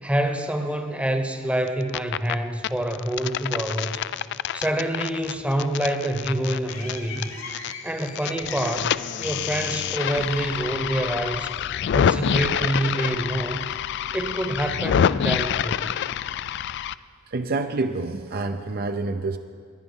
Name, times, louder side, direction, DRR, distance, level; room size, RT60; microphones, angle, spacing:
voice 1, 0.0-4.0 4.5-7.3 7.8-8.9 9.2-11.5 11.9-13.6 14.1-15.9, right 1 dB, 5° right, 6 dB, 0.9 m, -26 dB
sound 1, 1.7-2.3 2.6-7.7 8.0-16.9, left 9 dB, 55° left, 0.3 m, -27 dB
sound 2, 5.7-11.5, left 4 dB, 90° left, 2.3 m, -42 dB
voice 2, 17.3-19.4, right 3 dB, 50° right, 7 dB, 0.6 m, -28 dB
20.0 x 10.0 x 5.5 m, 2.2 s
head